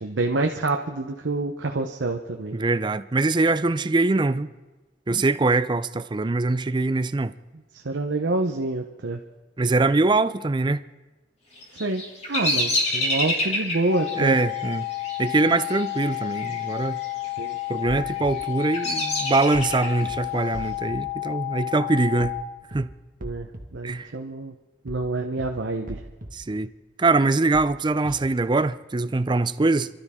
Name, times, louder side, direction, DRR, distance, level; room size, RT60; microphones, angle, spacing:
voice 1, 0.0-2.6 7.8-9.2 11.8-12.0 12.3-14.4 17.4-17.6 23.2-24.5 24.8-26.0, right 2 dB, 85° right, 0.8 m, -27 dB
voice 2, 2.5-4.5 5.1-7.3 9.6-10.8 14.1-14.9 15.2-17.0 17.7-22.4 22.7-22.9 23.8-24.1 26.3-26.7 27.0-29.9, right 3 dB, 25° right, 0.5 m, -23 dB
Bird vocalization bird call bird song, 11.6-16.6 16.9-17.5 18.0-20.0, left 1 dB, 35° left, 2.9 m, -28 dB
sound 1, 13.9-22.4, left 20 dB, 85° left, 1.3 m, -31 dB
sound 2, 18.2-18.3 19.5-19.7 20.0-20.1 20.5-21.0 22.2-22.4 22.7-22.8 23.2-23.6 24.9-25.1 25.4-25.5 25.9-26.3 27.5-27.7 28.0-28.1, right 1 dB, 50° right, 1.6 m, -39 dB
29.5 x 12.5 x 3.7 m
head